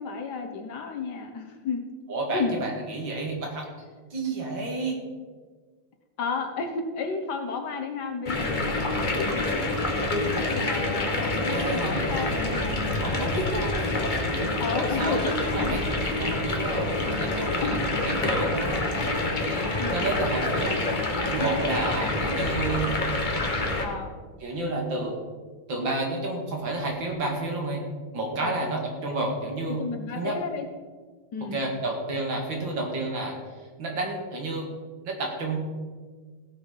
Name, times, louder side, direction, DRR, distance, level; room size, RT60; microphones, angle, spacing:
voice 1, 0.0-1.8 2.3-2.6 6.2-9.7 10.1-12.8 13.2-13.6 14.6-15.8 17.6-17.8 19.8-20.1 23.8-24.1 28.4-28.5 29.1-29.3 29.6-30.7 31.3-31.6, left 4 dB, 60° left, 5 dB, 1.7 m, -32 dB
voice 2, 2.1-3.7 4.1-5.0 11.5-12.3 13.0-13.9 14.8-16.9 17.2-18.8 19.4-21.0 21.3-22.9 24.4-25.1 25.7-27.8 28.1-29.8 30.1-30.4 31.5-33.4 33.8-34.7 35.0-35.6, right 2 dB, 75° right, 0 dB, 2.9 m, -30 dB
sound 1, 8.3-23.9, left 2 dB, 25° left, 1.4 m, -27 dB
16.5 x 6.2 x 5.7 m, 1.5 s
omnidirectional pair, 2.1 m